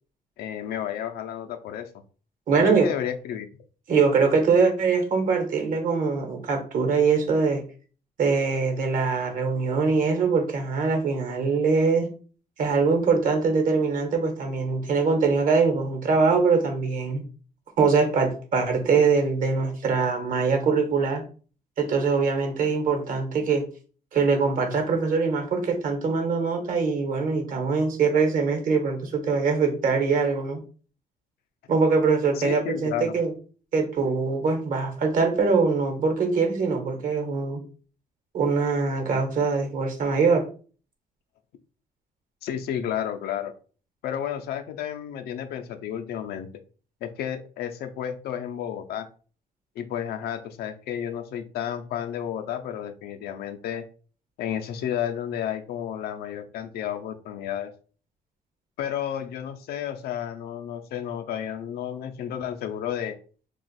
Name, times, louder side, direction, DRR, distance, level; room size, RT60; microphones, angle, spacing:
voice 1, 0.4-1.9 2.6-3.5 32.4-33.1 42.4-43.5 44.0-46.5 47.0-49.1 49.8-53.8 54.4-57.7 58.8-63.2, left 9 dB, 85° left, 7 dB, 0.5 m, -32 dB
voice 2, 2.5-2.9 3.9-7.6 8.2-12.1 12.6-17.2 17.8-21.2 21.8-23.6 24.1-30.6 31.7-33.3 33.7-37.6 38.3-40.4, right 4 dB, 60° right, 4 dB, 1.0 m, -23 dB
2.5 x 2.3 x 4.0 m, 0.39 s
cardioid pair, 110°, 16 cm